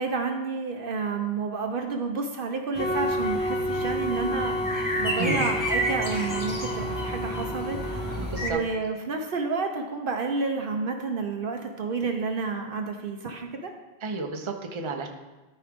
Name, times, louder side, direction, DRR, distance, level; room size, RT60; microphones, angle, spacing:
voice 1, 0.0-4.6 5.0-13.7, right 4 dB, 60° right, 4 dB, 0.8 m, -30 dB
sound 1, 2.7-8.5, equal, 20° left, 1.1 m, -31 dB
sound 2, 2.8-8.2, equal, 85° left, 1.1 m, -30 dB
voice 2, 8.2-8.6 14.0-15.1, right 3 dB, 30° right, 3 dB, 0.7 m, -31 dB
13.0 x 4.9 x 3.5 m, 1.2 s
omnidirectional pair, 1.1 m